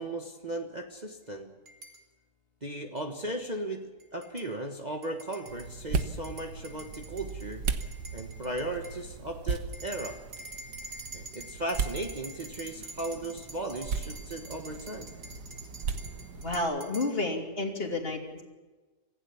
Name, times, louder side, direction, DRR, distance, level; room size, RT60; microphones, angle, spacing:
voice 1, 0.0-1.5 2.6-7.7 8.1-10.2 11.1-15.1, right 1 dB, 25° right, 3 dB, 1.4 m, -36 dB
sound 1, 1.7-2.0 3.0-3.1 4.0-4.5 5.0-9.0 9.7-17.1, right 2 dB, 50° right, 3.2 m, -46 dB
sound 2, 5.5-16.6, right 5 dB, 75° right, 1.8 m, -37 dB
voice 2, 16.4-18.4, left 2 dB, 35° left, 3 dB, 3.1 m, -31 dB
26.0 x 15.5 x 7.2 m, 1.3 s
omnidirectional pair, 1.8 m